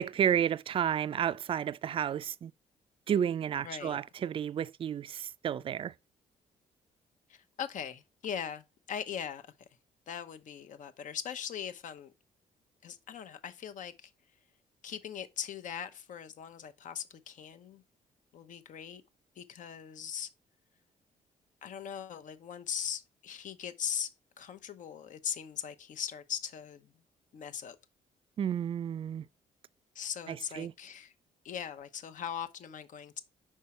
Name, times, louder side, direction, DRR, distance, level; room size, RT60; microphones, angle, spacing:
voice 1, 0.0-2.5 3.1-5.9 28.4-29.3 30.3-30.7, right 9 dB, 40° right, 0.3 m, -31 dB
voice 2, 3.6-4.0 7.3-9.4 10.1-12.1 12.8-14.1 14.8-17.8 18.3-19.0 19.4-20.3 21.6-26.9 27.3-27.8 29.9-31.1 31.4-33.2, left 8 dB, 60° left, 0.8 m, -40 dB
5.5 x 4.8 x 4.2 m
cardioid pair, 90°, 14 cm